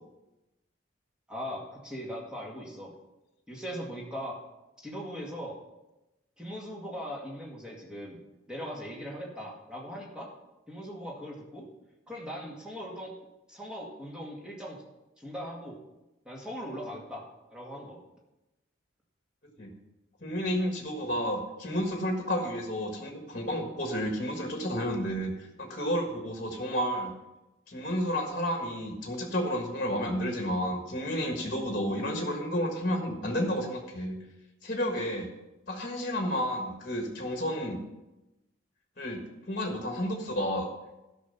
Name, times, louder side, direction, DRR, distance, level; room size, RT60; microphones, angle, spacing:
voice 1, 1.3-2.9 3.5-4.4 4.8-5.6 6.4-8.2 8.5-10.3 10.7-11.7 12.1-13.1 13.5-14.8 15.2-15.8 16.3-18.0, equal, 5° right, -3 dB, 2.1 m, -39 dB
voice 2, 20.2-27.1 27.7-34.2 34.6-35.3 35.7-37.8 39.0-40.7, equal, 40° left, 2 dB, 1.5 m, -31 dB
13.0 x 6.0 x 5.4 m, 0.98 s
head